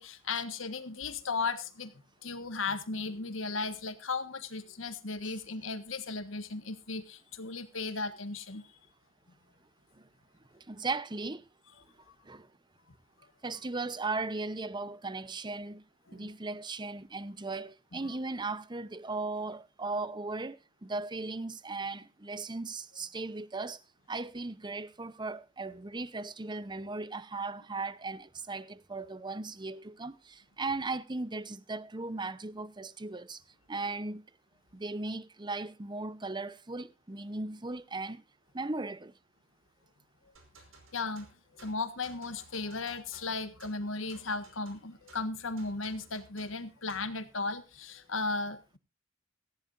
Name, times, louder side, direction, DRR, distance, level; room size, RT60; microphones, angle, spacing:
voice 1, 0.0-1.9 2.2-8.8 16.1-16.3 18.0-18.1 40.9-41.3 41.5-48.8, left 3 dB, 70° left, 1.5 m, -36 dB
voice 2, 10.5-11.4 12.2-12.5 13.4-15.8 16.1-23.8 24.1-33.4 33.7-34.2 34.7-38.2 38.5-39.1, right 3 dB, 20° right, 0.8 m, -37 dB
sound 1, 40.4-47.2, right 3 dB, 75° right, 4.8 m, -58 dB
18.0 x 15.0 x 2.6 m
head